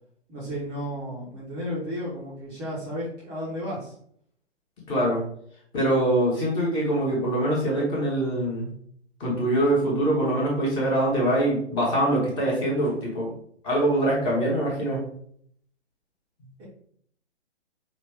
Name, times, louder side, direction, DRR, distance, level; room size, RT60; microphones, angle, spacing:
voice 1, 0.3-3.9 16.6-16.7, equal, 15° right, -7 dB, 0.7 m, -33 dB
voice 2, 4.9-5.2 5.7-8.7 9.2-13.3 13.6-15.0, right 1 dB, 15° left, -3 dB, 0.9 m, -23 dB
5.0 x 2.4 x 3.2 m, 0.65 s
figure-of-eight pair, 135°, 35 cm